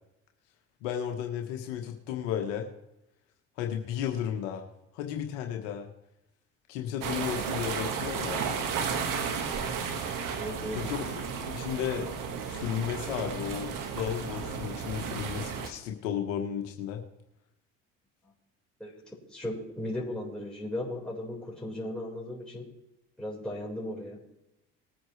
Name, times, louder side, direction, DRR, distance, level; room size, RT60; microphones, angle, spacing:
voice 1, 0.8-2.7 3.6-4.7 4.9-5.9 6.7-8.4 10.7-11.0 11.3-12.1 12.5-17.0, left 9 dB, 80° left, 3 dB, 1.4 m, -34 dB
sound 1, 7.0-15.7, right 6 dB, 65° right, 1.8 m, -33 dB
voice 2, 10.3-10.8 18.8-22.7 23.2-24.2, left 1 dB, ahead, -6 dB, 4.7 m, -36 dB
20.0 x 8.7 x 3.3 m, 0.87 s
hypercardioid pair, 60°, 35 cm